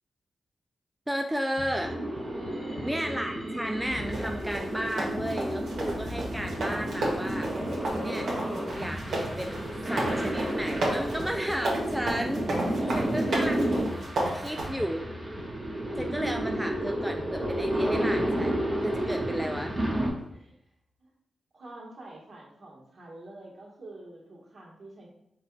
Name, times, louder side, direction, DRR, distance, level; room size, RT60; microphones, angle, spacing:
voice 1, 1.1-2.0 2.8-7.5 8.0-8.3 8.8-13.9 14.3-15.1 15.9-19.7, equal, 5° right, 4 dB, 0.3 m, -33 dB
sound 1, 1.6-3.7 4.0-6.1 6.4-8.5 8.8-10.9 11.2-13.2 13.6-15.7 16.0-18.1 18.4-20.5, left 2 dB, 85° left, 0.7 m, -45 dB
sound 2, 1.8-20.1, right 1 dB, 25° right, 1.4 m, -31 dB
voice 2, 2.3-2.9 12.7-13.4 19.0-19.6 20.3-20.5 21.0-21.1 21.5-25.1, right 2 dB, 55° right, -3 dB, 1.6 m, -44 dB
sound 3, 4.1-14.7, right 1 dB, 75° right, 1.3 m, -32 dB
4.6 x 2.5 x 4.6 m, 0.78 s
cardioid pair, 70°, 0 cm